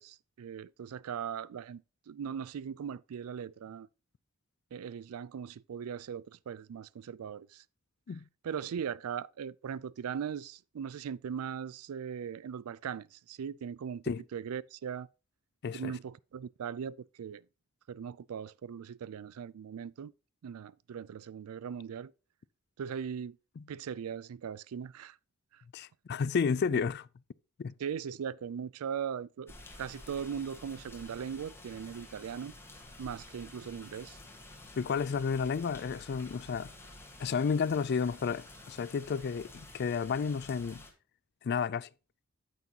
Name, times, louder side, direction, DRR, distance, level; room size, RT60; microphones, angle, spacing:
voice 1, 0.0-3.9 4.7-7.6 8.4-14.0 14.3-15.1 15.7-17.4 17.9-20.1 20.4-22.1 22.8-23.4 23.7-25.2 25.5-25.6 26.7-26.8 27.8-29.5 29.8-32.5 33.0-34.2, right 7 dB, 85° right, 0.4 m, -39 dB
voice 2, 25.7-27.0 27.6-27.7 34.8-36.7 37.2-40.8 41.4-41.9, left 6 dB, 50° left, 0.3 m, -31 dB
sound 1, 29.5-40.9, left 2 dB, 10° left, 1.5 m, -51 dB
9.2 x 8.3 x 2.8 m
head